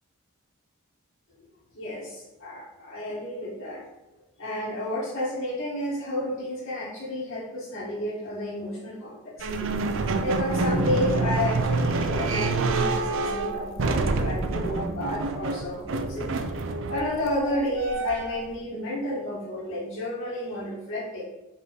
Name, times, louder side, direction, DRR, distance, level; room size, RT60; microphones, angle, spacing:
voice 1, 1.7-3.8 4.4-9.7 10.2-16.3 16.9-21.2, left 1 dB, 70° left, -10 dB, 1.9 m, -31 dB
sound 1, 9.4-18.5, right 3 dB, 60° right, 0.5 m, -27 dB
5.2 x 4.4 x 4.1 m, 0.97 s
head